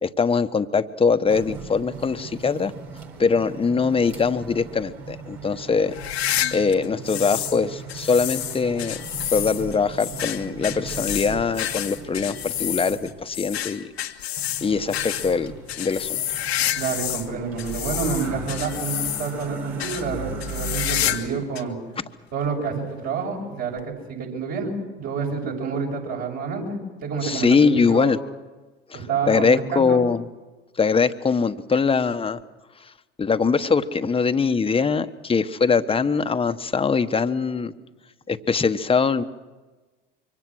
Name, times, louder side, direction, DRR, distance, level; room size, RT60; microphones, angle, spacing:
voice 1, 0.0-2.7 3.2-5.9 6.5-9.0 9.3-13.9 14.3-15.5 15.8-16.2 27.2-28.2 28.9-30.2 30.8-32.4 33.2-37.7 38.3-39.2, left 5 dB, 20° left, 9 dB, 1.2 m, -22 dB
sound 1, 1.3-13.1 14.4-21.2, right 4 dB, 75° right, 4.5 m, -38 dB
sound 2, 5.9-7.6 7.9-17.3 17.6-19.5 19.8-20.0 20.4-21.3 21.6-21.7 22.4-22.5 23.8-23.9, left 12 dB, 90° left, 1.7 m, -29 dB
voice 2, 16.7-21.8 22.3-28.1 28.9-30.0, right 5 dB, 55° right, -1 dB, 7.4 m, -28 dB
24.5 x 24.5 x 6.4 m, 1.2 s
hypercardioid pair, 75°, 31 cm